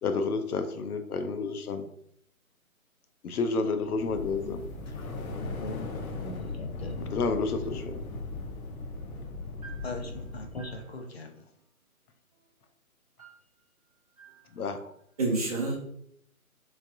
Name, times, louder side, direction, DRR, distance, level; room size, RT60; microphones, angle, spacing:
voice 1, 0.0-1.9 3.2-4.6 5.0-5.1 7.0-8.0 14.5-14.9, left 4 dB, 90° left, 8 dB, 0.6 m, -30 dB
sound 1, 3.8-10.8, left 3 dB, 70° left, 1.0 m, -38 dB
voice 2, 4.9-5.9 6.2-7.1 9.8-11.3, left 2 dB, 45° left, 3 dB, 0.5 m, -40 dB
voice 3, 15.2-15.7, right 2 dB, 25° right, -4 dB, 0.7 m, -31 dB
3.2 x 2.5 x 2.5 m, 0.70 s
hypercardioid pair, 155°, 43 cm